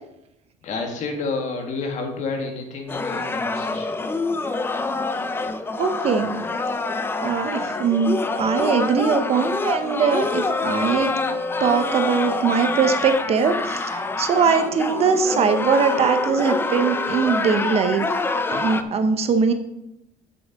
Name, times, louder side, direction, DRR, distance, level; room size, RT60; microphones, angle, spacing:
voice 1, 0.6-4.0, left 3 dB, 45° left, 3 dB, 1.9 m, -30 dB
sound 1, 2.9-18.8, left 3 dB, 15° left, 0.5 m, -26 dB
voice 2, 5.8-6.4 7.2-11.1 11.6-18.1 18.5-19.5, right 6 dB, 40° right, 9 dB, 0.8 m, -21 dB
7.5 x 6.6 x 5.2 m, 0.85 s
cardioid pair, 155°, 17 cm